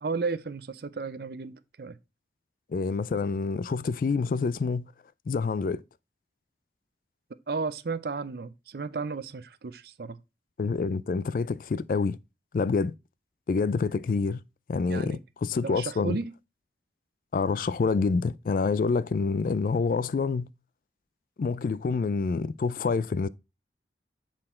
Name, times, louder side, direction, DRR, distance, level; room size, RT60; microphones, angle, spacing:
voice 1, 0.0-2.0 7.5-10.2 14.8-15.2 15.6-16.3, right 4 dB, 60° right, 0.5 m, -33 dB
voice 2, 2.7-4.9 5.3-5.8 10.6-12.2 12.5-12.9 13.5-14.4 14.7-16.2 17.3-20.5 21.4-23.3, left 4 dB, 50° left, 0.3 m, -27 dB
7.5 x 4.4 x 4.2 m
head